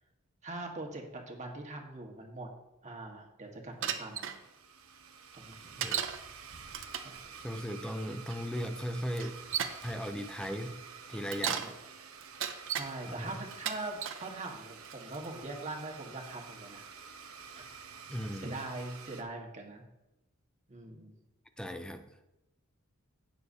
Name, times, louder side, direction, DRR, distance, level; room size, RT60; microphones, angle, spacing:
voice 1, 0.4-2.5 2.8-4.3 5.3-5.8 7.0-7.4 11.4-11.7 12.7-16.8 17.5-17.6 18.3-19.8 20.7-21.1, right 2 dB, 35° right, 1 dB, 1.5 m, -42 dB
Bicycle, 3.8-4.4 5.8-6.2 6.7-7.2 8.3-8.4 9.1-9.8 11.1-11.7 12.2-12.9 13.5-14.2 14.8-15.3, right 8 dB, 65° right, 0.8 m, -35 dB
Domestic sounds home sounds, 4.0-19.2, right 6 dB, 85° right, 1.0 m, -49 dB
voice 2, 7.4-9.4 9.8-10.8 11.1-11.7 13.1-13.4 18.1-18.6 21.6-22.1, equal, 5° left, 7 dB, 0.5 m, -37 dB
16.0 x 6.8 x 2.8 m, 0.95 s
head